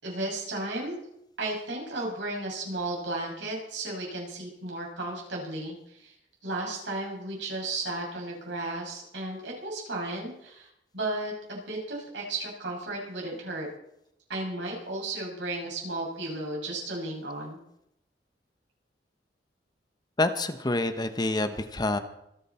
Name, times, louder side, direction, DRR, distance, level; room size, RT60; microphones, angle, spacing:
voice 1, 0.0-1.0 1.4-6.1 6.4-13.7 14.3-17.6, right 2 dB, 85° right, -2 dB, 7.0 m, -34 dB
voice 2, 20.2-22.0, left 2 dB, 25° left, 9 dB, 1.0 m, -27 dB
25.5 x 11.0 x 4.3 m, 0.78 s
head